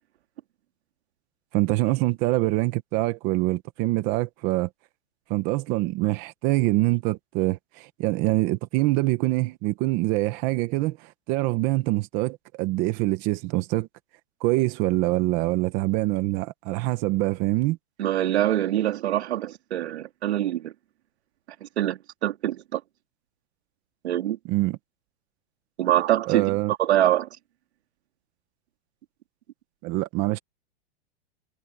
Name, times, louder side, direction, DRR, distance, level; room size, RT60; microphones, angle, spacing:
voice 1, 1.5-4.7 5.3-13.9 14.4-17.8 24.5-24.8 26.3-26.7 29.8-30.4, right 19 dB, 25° right, 0.9 m, -25 dB
voice 2, 18.0-20.7 21.6-22.8 24.0-24.4 25.8-27.3, right 12 dB, 75° right, 2.1 m, -24 dB
supercardioid pair, 170°, 33 cm